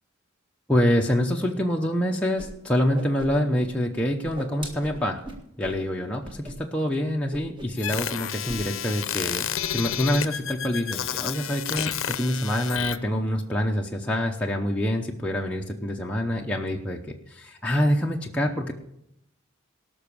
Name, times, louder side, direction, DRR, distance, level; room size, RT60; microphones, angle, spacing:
voice 1, 0.7-5.2 5.6-17.0 17.3-18.7, equal, 5° left, -1 dB, 0.8 m, -26 dB
Whoosh swoosh swish, 2.4-2.5 2.7-3.7 3.9-5.8 6.2-6.5 6.8-7.0 7.3-7.8 8.1-8.6, right 1 dB, 20° right, 1.7 m, -39 dB
sound 1, 7.8-13.0, left 9 dB, 70° left, 0.7 m, -31 dB
18.5 x 6.2 x 6.9 m, 0.80 s
head